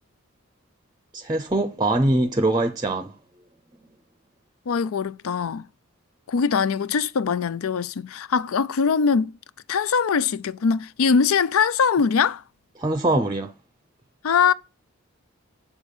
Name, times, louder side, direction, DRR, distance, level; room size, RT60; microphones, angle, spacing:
voice 1, 1.1-3.1 12.8-13.5, right 2 dB, 20° right, 0.6 m, -22 dB
voice 2, 4.7-5.7 6.3-9.4 9.7-12.4 14.2-14.5, left 6 dB, 85° left, 0.4 m, -22 dB
7.2 x 6.6 x 5.3 m
head